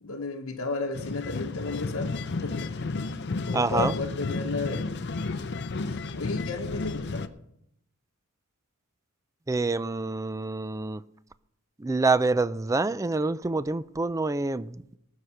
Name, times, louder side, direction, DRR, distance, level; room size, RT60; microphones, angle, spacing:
voice 1, 0.0-2.7 3.0-4.8 5.9-7.3, left 3 dB, 70° left, 1.0 m, -34 dB
sound 1, 0.9-7.3, left 3 dB, 50° left, 0.6 m, -32 dB
voice 2, 3.5-3.9 9.5-11.0 11.8-15.0, right 3 dB, 15° right, 0.4 m, -27 dB
19.5 x 6.6 x 5.7 m
head